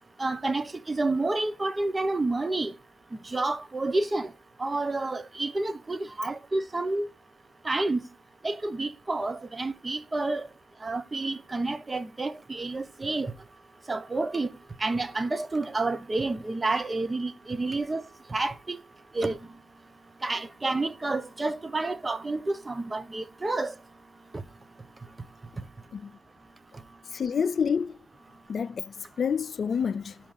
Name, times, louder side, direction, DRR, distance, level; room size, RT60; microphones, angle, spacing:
voice 1, 0.2-2.7 3.3-4.3 4.6-7.1 7.6-8.0 8.4-10.5 10.8-13.3 13.9-14.5 14.8-18.0 18.3-18.8 19.1-19.4 20.2-23.7 24.3-24.4, right 2 dB, 30° right, 0.9 m, -29 dB
voice 2, 27.1-28.0 28.5-30.2, left 6 dB, 50° left, 0.4 m, -28 dB
6.2 x 5.1 x 5.7 m
hypercardioid pair, 45°, 0 cm